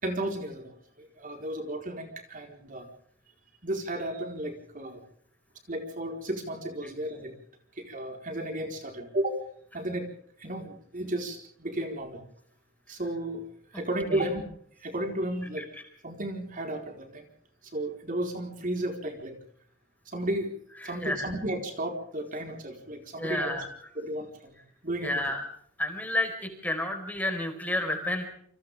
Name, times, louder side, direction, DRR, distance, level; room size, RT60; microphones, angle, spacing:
voice 1, 0.0-2.9 3.6-5.0 5.7-7.3 7.7-9.4 9.7-10.1 10.4-12.2 12.9-13.4 13.7-14.4 14.8-15.7 16.0-17.2 17.7-19.4 20.1-20.5 20.8-23.6 24.0-24.6 24.8-25.1, right 1 dB, 40° right, 3 dB, 4.4 m, -33 dB
voice 2, 20.8-21.3 23.2-23.7 25.0-25.4 25.8-28.3, left 1 dB, 10° left, 5 dB, 4.6 m, -31 dB
29.0 x 26.5 x 3.6 m, 0.64 s
head